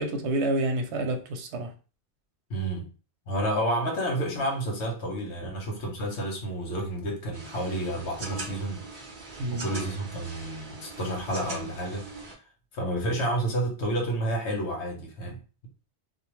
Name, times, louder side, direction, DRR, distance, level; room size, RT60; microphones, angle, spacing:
voice 1, 0.0-1.7 5.4-5.5 9.4-9.7, right 2 dB, 85° right, 0.9 m, -28 dB
voice 2, 2.5-2.9 3.3-8.9 9.5-12.1 12.7-15.4, right 1 dB, 85° left, 1.1 m, -30 dB
sound 1, 7.3-12.3, right 2 dB, 50° right, 0.8 m, -41 dB
2.5 x 2.1 x 3.0 m
omnidirectional pair, 1.1 m